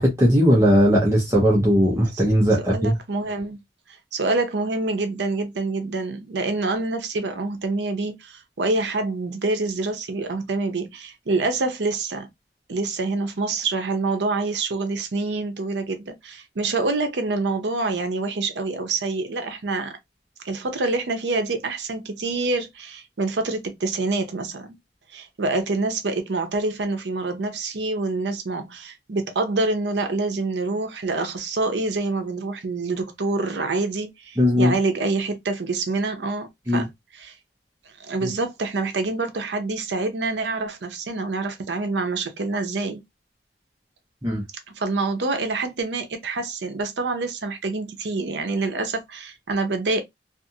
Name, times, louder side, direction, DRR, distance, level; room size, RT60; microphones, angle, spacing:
voice 1, 0.0-2.9 34.4-34.7 36.7-36.9 44.2-44.4, equal, 15° right, 0.7 m, -18 dB
voice 2, 2.6-3.6 4.1-12.3 12.7-20.0 20.4-24.8 25.1-36.9 37.1-37.3 38.0-43.0 44.8-50.0, right 3 dB, 75° right, 0.6 m, -26 dB
2.5 x 2.4 x 2.7 m
head